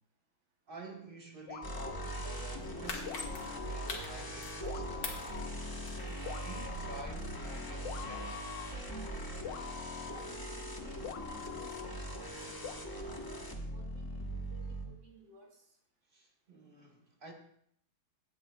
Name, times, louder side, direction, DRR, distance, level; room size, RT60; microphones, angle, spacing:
voice 1, 0.7-5.1 6.1-8.4 16.1-17.3, right 2 dB, 30° right, 1.2 m, -50 dB
sound 1, 1.5-2.5 3.1-4.1 4.7-5.5 6.3-7.1 7.9-8.7 9.4-10.3 11.0-11.9 12.6-12.7, left 7 dB, 70° left, 1.4 m, -45 dB
sound 2, 1.6-14.9, equal, 20° left, 0.5 m, -41 dB
sound 3, 2.5-4.7 5.0-6.3 6.7-6.8, left 4 dB, 50° left, 1.8 m, -42 dB
voice 2, 10.1-11.0 11.3-13.2 13.7-15.5, right 3 dB, 70° right, 3.1 m, -58 dB
16.0 x 9.3 x 2.3 m
omnidirectional pair, 2.2 m